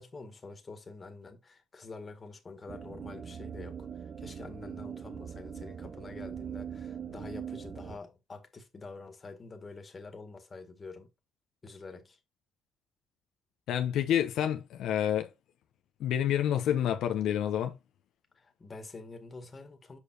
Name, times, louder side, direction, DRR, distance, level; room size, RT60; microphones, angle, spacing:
voice 1, 0.0-11.1 11.6-12.2 18.4-20.0, left 3 dB, 30° left, 1.8 m, -47 dB
sound 1, 2.7-8.0, right 7 dB, 55° right, 0.8 m, -41 dB
voice 2, 13.7-15.3 16.0-17.8, left 10 dB, 85° left, 0.8 m, -28 dB
6.8 x 5.0 x 2.8 m
cardioid pair, 90°, 0 cm